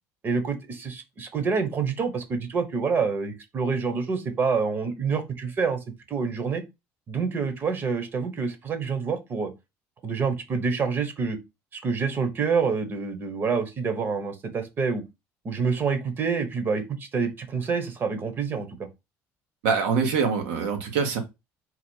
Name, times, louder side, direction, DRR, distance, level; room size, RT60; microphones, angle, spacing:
voice 1, 0.2-5.8 6.1-6.6 7.1-9.5 10.0-11.4 11.7-15.0 15.4-18.9, right 5 dB, 35° right, 1.0 m, -27 dB
voice 2, 19.6-21.2, right 6 dB, 85° right, 1.4 m, -24 dB
4.1 x 2.5 x 4.5 m
cardioid pair, 120°, 6 cm